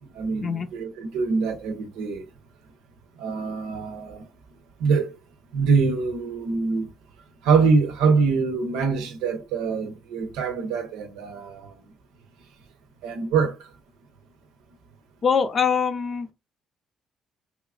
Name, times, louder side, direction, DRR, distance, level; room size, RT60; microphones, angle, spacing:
voice 1, 0.1-2.2 3.2-4.2 4.8-5.1 5.5-6.9 7.4-11.8 13.0-13.7, right 5 dB, 85° right, 0.8 m, -24 dB
voice 2, 15.2-16.3, left 6 dB, 50° left, 0.5 m, -23 dB
3.6 x 3.0 x 2.4 m
supercardioid pair, 65°, 0 cm